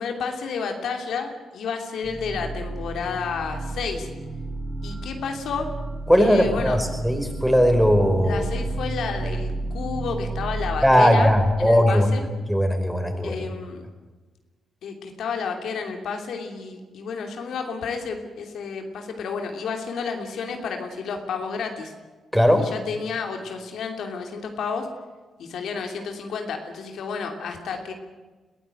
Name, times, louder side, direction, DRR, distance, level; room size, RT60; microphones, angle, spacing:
voice 1, 0.0-4.1 4.8-5.7 6.2-6.8 8.2-11.3 11.6-12.2 13.2-13.9 14.8-21.9 22.5-24.9 25.4-27.9, left 5 dB, 75° left, 3 dB, 2.9 m, -31 dB
sound 1, 2.0-11.9, right 2 dB, 30° right, 4.7 m, -32 dB
voice 2, 6.1-8.4 10.8-12.1 12.5-13.4 22.3-22.7, equal, ahead, 5 dB, 5.2 m, -18 dB
22.0 x 15.5 x 9.2 m, 1.3 s
cardioid pair, 65°, 0 cm